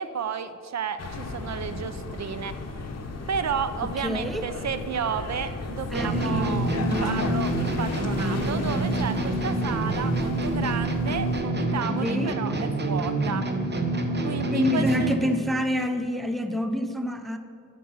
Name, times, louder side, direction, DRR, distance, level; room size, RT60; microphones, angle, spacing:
voice 1, 0.0-2.6 3.3-6.7 7.0-13.4 14.2-15.1, right 7 dB, 60° right, 12 dB, 0.5 m, -32 dB
sound 1, 1.0-11.4, left 3 dB, 50° left, 0.9 m, -35 dB
voice 2, 3.8-4.4 5.9-7.3 12.0-12.4 14.5-17.4, left 1 dB, ahead, 8 dB, 0.4 m, -27 dB
sound 2, 5.9-15.3, right 1 dB, 35° right, 0.8 m, -27 dB
8.0 x 6.1 x 6.0 m, 2.6 s
wide cardioid pair, 130°, 32 cm